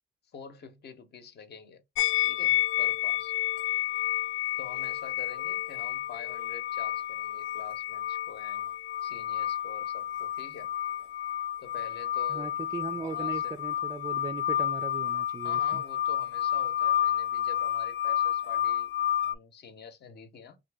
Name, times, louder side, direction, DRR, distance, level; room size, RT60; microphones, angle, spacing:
voice 1, 0.3-1.8 2.2-3.3 4.0-4.1 4.6-8.7 9.0-10.7 11.6-12.5 12.9-13.6 15.4-18.9 19.2-20.6, left 6 dB, 55° left, 0.8 m, -47 dB
sound 1, 2.0-19.3, left 12 dB, 75° left, 0.4 m, -30 dB
voice 2, 12.3-15.8, right 5 dB, 20° right, 0.3 m, -38 dB
2.7 x 2.5 x 3.5 m
cardioid pair, 90°, 20 cm